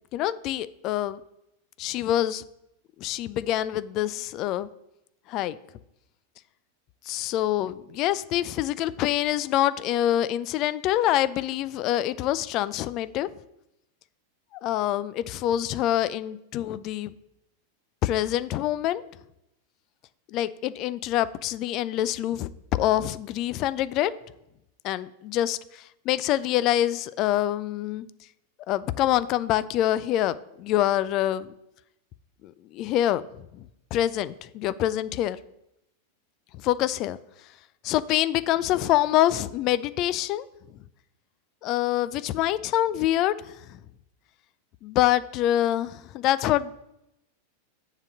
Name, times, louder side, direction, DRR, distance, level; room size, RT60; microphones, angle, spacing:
voice 1, 0.1-1.2 1.8-2.4 3.0-4.7 5.3-5.6 7.1-13.3 14.6-17.1 18.0-19.0 20.3-24.1 24.8-28.1 28.7-31.5 32.4-33.2 33.5-33.6 33.9-35.4 36.5-37.2 37.8-40.5 41.6-43.8 44.8-46.7, left 13 dB, 40° left, 0.3 m, -25 dB
7.1 x 3.9 x 6.4 m
figure-of-eight pair, 90°, 0 cm